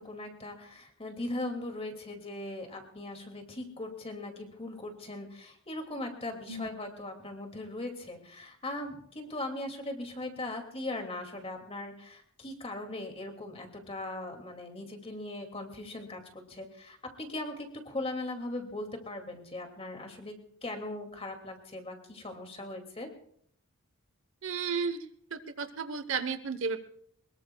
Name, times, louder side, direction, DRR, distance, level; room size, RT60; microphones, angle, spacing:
voice 1, 0.0-20.3 20.6-23.1, left 2 dB, 25° left, 4 dB, 2.3 m, -39 dB
voice 2, 24.4-25.0 25.3-26.8, right 5 dB, 60° right, 12 dB, 0.9 m, -33 dB
23.0 x 21.0 x 2.3 m, 0.65 s
head